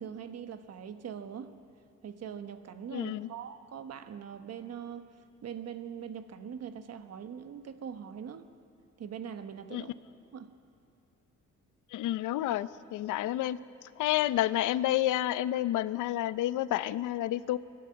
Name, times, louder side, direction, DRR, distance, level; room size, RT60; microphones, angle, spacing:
voice 1, 0.0-1.5 2.0-5.1 5.4-8.5 9.0-9.9 10.3-10.5, right 8 dB, 55° right, 9 dB, 1.3 m, -42 dB
voice 2, 2.9-3.3 9.7-9.8 11.9-13.6 14.0-17.6, left 14 dB, 85° left, 16 dB, 0.6 m, -30 dB
22.5 x 12.5 x 9.7 m, 2.5 s
cardioid pair, 90°, 30 cm